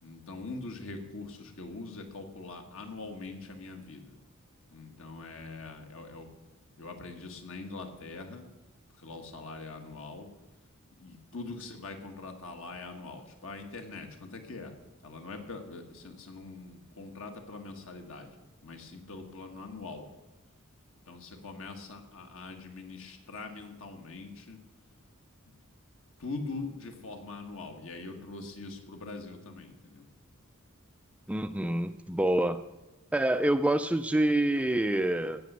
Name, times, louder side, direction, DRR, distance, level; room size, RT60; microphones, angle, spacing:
voice 1, 0.0-4.2 4.7-6.3 6.8-8.5 9.0-10.3 11.0-14.7 15.0-18.3 18.6-20.0 21.1-24.6 26.2-30.1, left 3 dB, 65° left, 4 dB, 1.7 m, -43 dB
voice 2, 31.3-32.6 33.1-35.4, right 1 dB, 5° right, 10 dB, 0.3 m, -27 dB
16.5 x 6.1 x 6.8 m, 1.0 s
head